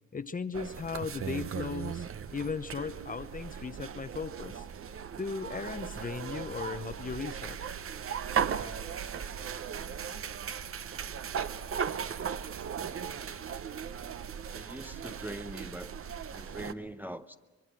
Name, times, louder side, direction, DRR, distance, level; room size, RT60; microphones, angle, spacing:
voice 1, 0.1-4.7 5.2-7.6, left 5 dB, 30° left, 0.8 m, -37 dB
sound 1, 0.5-16.7, right 7 dB, 45° right, 1.0 m, -37 dB
voice 2, 14.5-15.9 16.3-17.4, right 1 dB, 5° right, 0.7 m, -42 dB
24.0 x 21.5 x 7.7 m
cardioid pair, 90°, 30 cm